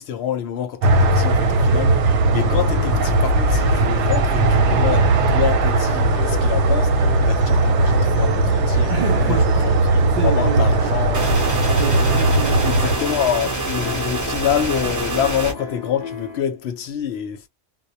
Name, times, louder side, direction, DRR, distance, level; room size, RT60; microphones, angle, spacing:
voice 1, 0.0-8.9 9.2-11.3 12.6-17.5, left 9 dB, 70° left, 0.8 m, -26 dB
sound 1, 0.8-13.0, right 2 dB, 85° right, 0.9 m, -18 dB
sound 2, 2.7-16.4, left 4 dB, 20° left, 1.0 m, -36 dB
voice 2, 8.9-11.0 11.8-12.9, right 6 dB, 60° right, 0.6 m, -28 dB
sound 3, 11.1-15.5, right 2 dB, 20° right, 0.7 m, -26 dB
2.1 x 2.1 x 2.7 m
omnidirectional pair, 1.2 m